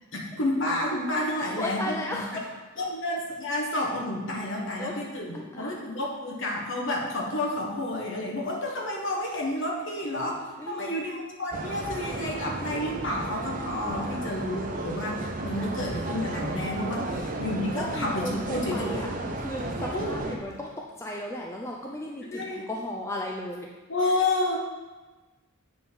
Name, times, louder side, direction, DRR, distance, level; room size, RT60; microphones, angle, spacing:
voice 1, 0.1-1.9 2.8-19.1 19.9-20.1 22.3-22.6 23.9-24.6, left 1 dB, 55° left, -1 dB, 1.3 m, -30 dB
voice 2, 1.4-2.5 4.8-5.0 5.3-5.8 10.6-11.0 14.0-14.2 17.0-17.3 17.7-23.7, left 1 dB, 10° left, -1 dB, 0.4 m, -36 dB
sound 1, 11.5-20.4, right 2 dB, 35° right, 0.6 m, -34 dB
7.5 x 4.3 x 5.4 m, 1.2 s
head